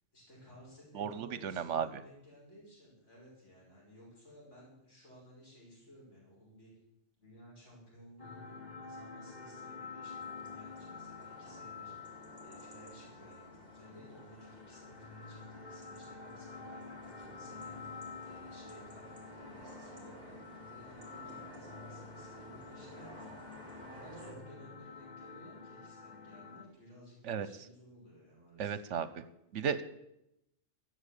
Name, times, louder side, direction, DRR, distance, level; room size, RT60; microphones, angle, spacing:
voice 1, 0.1-6.7 7.2-23.3 23.7-28.9, equal, 70° left, -5 dB, 6.2 m, -57 dB
voice 2, 0.9-1.9 27.2-27.5 28.6-29.2 29.5-29.8, right 7 dB, 75° right, 14 dB, 1.0 m, -34 dB
sound 1, 8.2-26.6, left 5 dB, 35° left, 1.5 m, -49 dB
sound 2, 10.2-24.3, right 1 dB, 15° right, 4.7 m, -54 dB
15.5 x 7.9 x 8.3 m, 0.85 s
omnidirectional pair, 1.3 m